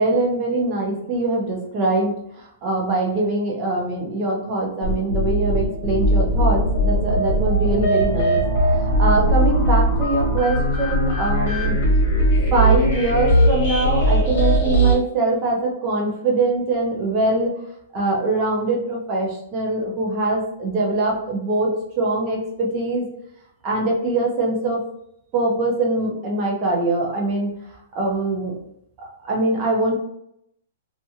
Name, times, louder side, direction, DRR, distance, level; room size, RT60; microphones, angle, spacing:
voice 1, 0.0-2.1 2.6-8.4 8.7-11.8 12.5-17.5 17.9-23.0 23.6-24.8 25.3-27.5 27.9-28.5 29.2-29.9, right 2 dB, 25° right, -2 dB, 0.6 m, -22 dB
sound 1, 4.8-14.9, right 1 dB, 45° left, 1.1 m, -19 dB
2.6 x 2.4 x 2.7 m, 0.76 s
hypercardioid pair, 175°, 0 cm